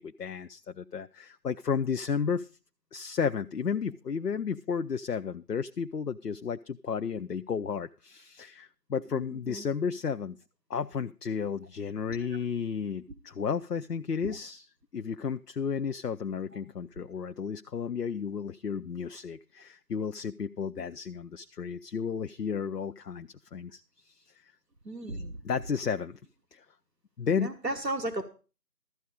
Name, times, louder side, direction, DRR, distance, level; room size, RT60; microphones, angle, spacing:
voice 1, 0.0-2.5 2.9-10.4 10.7-14.6 14.9-24.3 25.4-26.2 26.5-26.7 27.2-27.5, left 6 dB, 75° left, 9 dB, 0.6 m, -33 dB
voice 2, 9.1-9.6 12.1-12.4 14.2-14.4 16.5-16.6 22.4-22.5 24.8-25.4 27.2-28.2, right 2 dB, 90° right, 4 dB, 1.4 m, -36 dB
12.5 x 8.2 x 5.0 m, 0.34 s
figure-of-eight pair, 175°, 48 cm